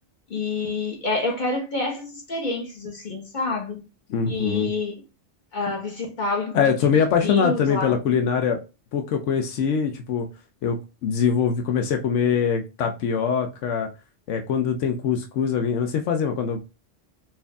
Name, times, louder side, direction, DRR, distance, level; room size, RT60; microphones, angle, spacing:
voice 1, 0.3-3.8 4.3-4.9 5.5-7.9, left 3 dB, 40° left, 1.4 m, -28 dB
voice 2, 4.1-4.7 6.5-8.6 8.9-10.3 10.6-13.9 14.3-16.6, left 6 dB, 80° left, 0.9 m, -23 dB
4.4 x 2.6 x 3.4 m
omnidirectional pair, 1.3 m